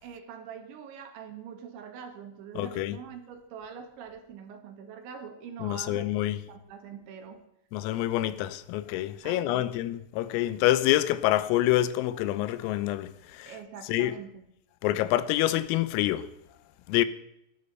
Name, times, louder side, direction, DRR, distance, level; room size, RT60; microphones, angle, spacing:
voice 1, 0.0-6.1 6.5-7.4 9.2-9.7 13.5-14.4, right 7 dB, 70° right, 3.8 m, -44 dB
voice 2, 2.6-3.0 5.6-6.4 7.7-13.5 13.9-14.2 14.8-16.3 16.9-17.1, left 14 dB, 85° left, 3.5 m, -27 dB
18.5 x 12.5 x 5.5 m
omnidirectional pair, 6.0 m